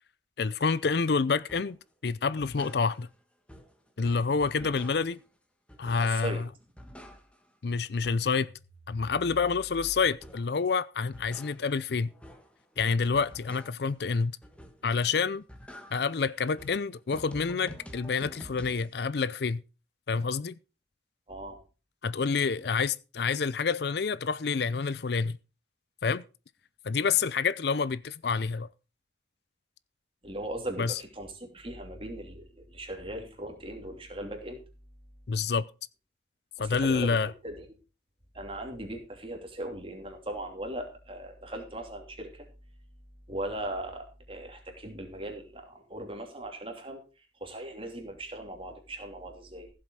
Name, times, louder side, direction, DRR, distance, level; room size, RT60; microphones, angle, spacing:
voice 1, 0.4-1.8 2.0-3.1 4.0-5.2 5.8-6.5 7.6-8.5 8.9-12.1 12.8-14.3 14.8-15.4 15.9-19.6 20.1-20.5 22.0-25.4 26.0-26.2 26.8-28.7 30.8-31.0 35.3-35.6 36.6-37.3, left 5 dB, 60° left, 0.5 m, -28 dB
sound 1, 1.5-1.8 2.2-3.2 3.5-5.3 5.7-6.3 6.6-7.6 7.9-10.6 11.0-14.0 14.4-15.0 15.3-18.9, equal, 5° left, 1.5 m, -49 dB
voice 2, 6.0-6.4 21.3-21.6 30.2-34.6 36.6-37.7 38.3-42.4 43.3-47.0 47.4-49.7, right 1 dB, 30° right, 2.9 m, -39 dB
15.5 x 7.7 x 4.7 m
head